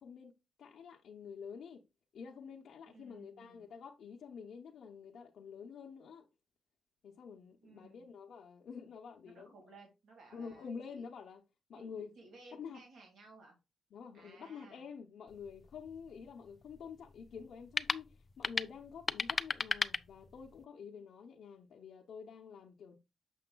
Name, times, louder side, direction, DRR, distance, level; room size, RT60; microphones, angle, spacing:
voice 1, 0.0-1.8 2.1-6.2 7.0-9.6 10.3-11.4 11.7-12.1 12.5-12.8 13.9-23.0, left 6 dB, 60° left, 0.7 m, -48 dB
voice 2, 2.9-3.7 7.6-8.1 9.2-11.0 11.7-13.6 14.1-14.8, right 3 dB, 70° right, 1.9 m, -58 dB
sound 1, 15.3-20.6, left 4 dB, 25° left, 0.3 m, -38 dB
6.8 x 6.4 x 2.2 m
cardioid pair, 120°, 0 cm